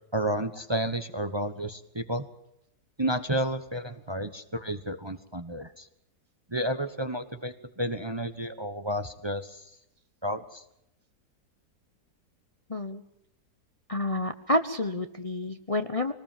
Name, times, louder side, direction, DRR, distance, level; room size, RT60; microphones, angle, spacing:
voice 1, 0.1-2.2 3.0-5.9 6.5-9.6 10.2-10.6, right 1 dB, 20° right, 9 dB, 1.1 m, -31 dB
voice 2, 12.7-13.0 13.9-16.1, left 1 dB, 25° left, 8 dB, 0.9 m, -29 dB
24.0 x 19.5 x 7.4 m, 0.81 s
omnidirectional pair, 1.7 m